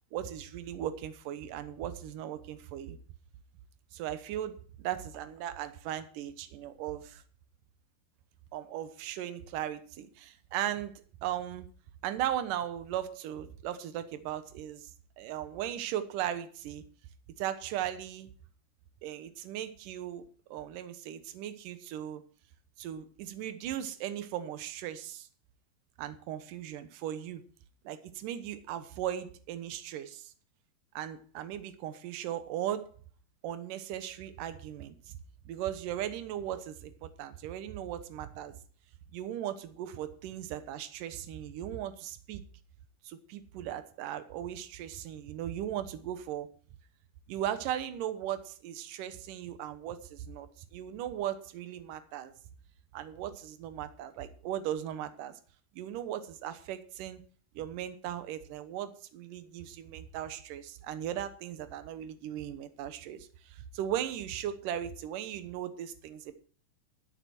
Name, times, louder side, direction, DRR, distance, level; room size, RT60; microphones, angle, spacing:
voice 1, 0.1-3.0 3.9-7.2 8.5-10.9 11.2-11.7 12.0-14.8 15.2-16.8 17.4-18.3 19.0-20.2 20.5-22.2 22.8-25.3 26.0-27.4 27.8-30.3 30.9-32.9 33.4-35.2 35.5-38.5 39.1-42.4 43.0-46.5 47.3-52.3 52.9-55.3 55.8-57.2 57.6-66.3, right 11 dB, 70° right, 10 dB, 2.1 m, -37 dB
12.5 x 11.0 x 4.4 m, 0.43 s
omnidirectional pair, 5.1 m